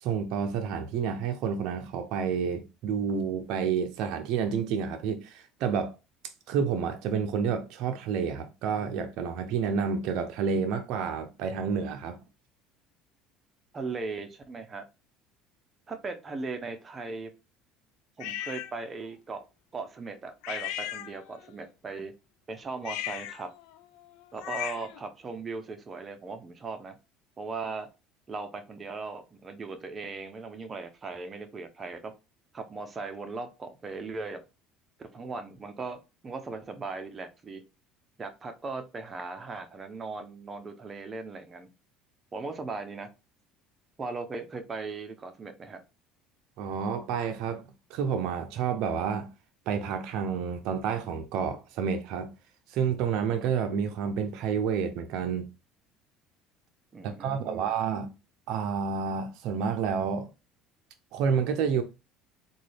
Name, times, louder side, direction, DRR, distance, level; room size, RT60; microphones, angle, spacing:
voice 1, 0.0-6.0 6.5-12.2 46.6-47.6 47.9-49.3 49.7-52.3 52.7-55.5 57.0-58.1 58.5-60.3 61.1-61.8, right 6 dB, 70° right, 0.5 m, -29 dB
voice 2, 13.7-14.8 15.9-17.3 18.2-19.4 19.7-22.1 22.5-23.5 24.3-27.0 27.4-27.9 28.3-32.1 32.5-34.4 35.0-37.6 38.2-41.7 42.3-43.1 44.0-45.8 56.9-57.7, right 4 dB, 30° right, 0.7 m, -38 dB
sound 1, 18.2-18.7 20.4-21.5 22.8-25.0, left 13 dB, 75° left, 0.3 m, -37 dB
3.7 x 2.3 x 3.3 m
supercardioid pair, 95°, 0 cm